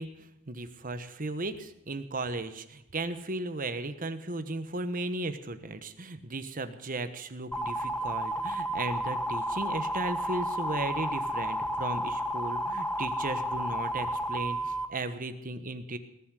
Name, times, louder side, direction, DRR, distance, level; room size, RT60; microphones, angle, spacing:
voice 1, 0.0-16.0, right 2 dB, 40° right, 10 dB, 1.2 m, -36 dB
sound 1, 7.5-14.9, equal, 5° left, 0.7 m, -32 dB
19.0 x 7.5 x 9.9 m, 0.85 s
head